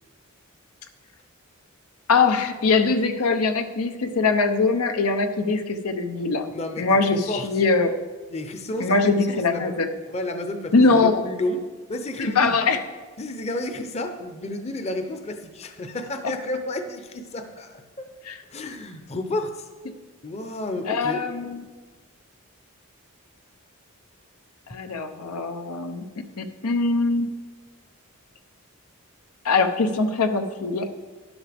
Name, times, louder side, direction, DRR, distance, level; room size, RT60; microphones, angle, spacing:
voice 1, 2.1-6.5 6.8-7.9 8.8-9.9 10.7-11.2 12.2-12.8 16.2-16.3 18.2-18.4 20.9-21.6 24.7-26.0 26.4-27.3 29.4-30.9, left 3 dB, 90° left, 7 dB, 0.8 m, -22 dB
voice 2, 6.5-7.5 8.3-9.1 9.5-9.7 10.1-12.6 13.2-18.1 18.5-19.7 20.2-21.2, left 1 dB, 30° left, 7 dB, 0.7 m, -31 dB
12.5 x 11.0 x 3.5 m, 1.4 s
head